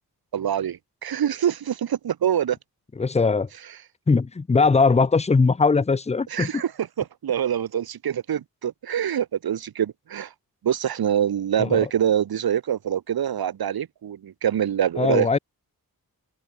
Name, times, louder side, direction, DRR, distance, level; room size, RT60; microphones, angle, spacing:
voice 1, 0.3-2.6 6.3-10.3 10.6-15.3, right 9 dB, 80° right, 0.9 m, -25 dB
voice 2, 3.0-3.5 4.1-6.6 11.6-11.9 15.0-15.4, left 4 dB, 20° left, 0.5 m, -20 dB
open air
wide cardioid pair, 115°, 37 cm